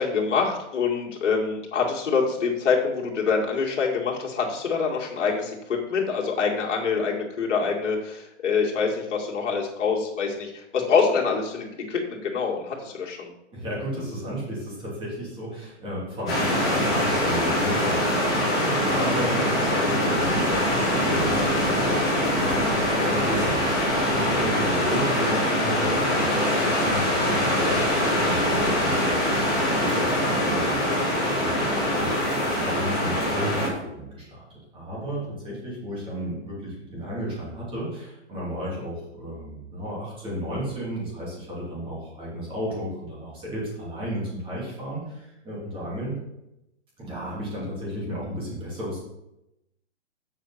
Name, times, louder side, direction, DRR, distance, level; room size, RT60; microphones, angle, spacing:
voice 1, 0.0-13.3 24.9-25.0 31.6-31.9, left 5 dB, 75° left, -2 dB, 2.2 m, -25 dB
voice 2, 13.5-32.1 32.4-46.1 47.0-49.0, equal, 15° right, -6 dB, 2.8 m, -33 dB
sound 1, 16.3-33.7, left 1 dB, 5° left, 0.3 m, -23 dB
7.5 x 5.0 x 5.7 m, 0.89 s
hypercardioid pair, 155°, 36 cm